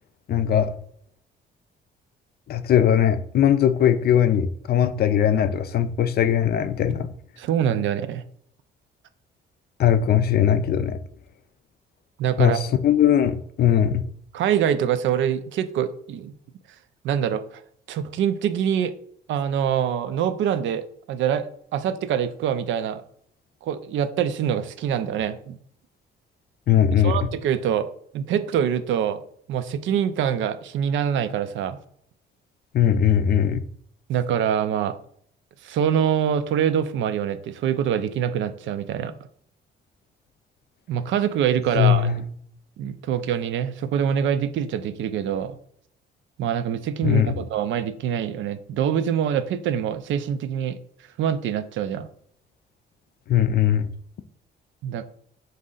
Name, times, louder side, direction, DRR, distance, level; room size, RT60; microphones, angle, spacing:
voice 1, 0.3-0.7 2.5-7.1 9.8-11.0 12.4-14.1 26.7-27.3 32.7-33.6 41.8-42.2 47.0-47.4 53.3-53.9, left 9 dB, 50° left, 0.4 m, -20 dB
voice 2, 7.4-8.2 12.2-12.6 14.3-16.3 17.0-17.6 17.9-18.9 19.3-23.0 23.6-25.6 27.0-27.9 28.1-29.2 29.5-31.8 34.1-34.9 35.6-39.1 40.9-42.1 42.8-45.6 46.4-50.8 51.2-52.1 54.8-55.0, right 9 dB, 75° right, 0.4 m, -25 dB
4.0 x 2.6 x 3.8 m
cardioid pair, 90°, 20 cm